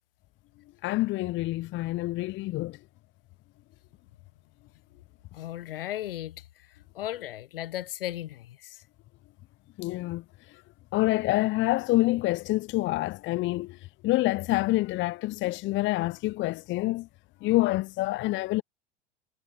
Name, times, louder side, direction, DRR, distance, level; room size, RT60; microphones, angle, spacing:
voice 1, 0.8-2.7 9.8-10.2 10.9-13.7 14.0-17.1 17.4-18.6, left 19 dB, 40° left, 0.9 m, -27 dB
voice 2, 5.3-6.4 6.9-8.8, left 13 dB, 70° left, 1.0 m, -36 dB
figure-of-eight pair, 75°, 29 cm